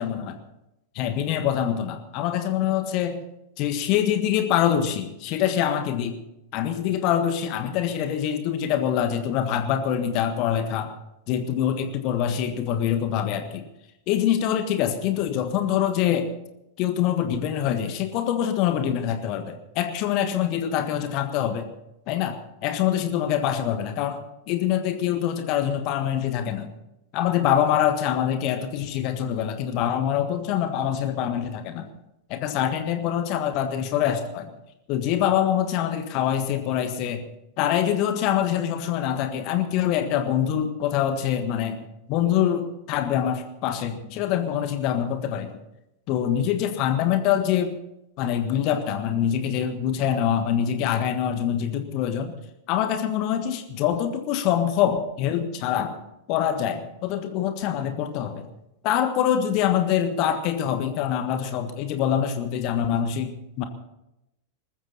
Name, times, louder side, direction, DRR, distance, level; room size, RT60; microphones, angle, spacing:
voice 1, 0.0-0.3 0.9-3.2 3.6-6.2 6.5-10.9 11.3-13.6 14.1-16.3 16.8-21.7 22.1-24.2 24.5-26.7 27.1-31.9 32.3-34.5 34.9-37.2 37.6-41.8 42.1-45.5 46.1-47.7 48.2-52.3 52.7-56.0 56.3-58.5 58.8-63.6, left 10 dB, 40° left, 8 dB, 1.5 m, -25 dB
20.5 x 14.5 x 4.2 m, 0.87 s
figure-of-eight pair, 90°, 0 cm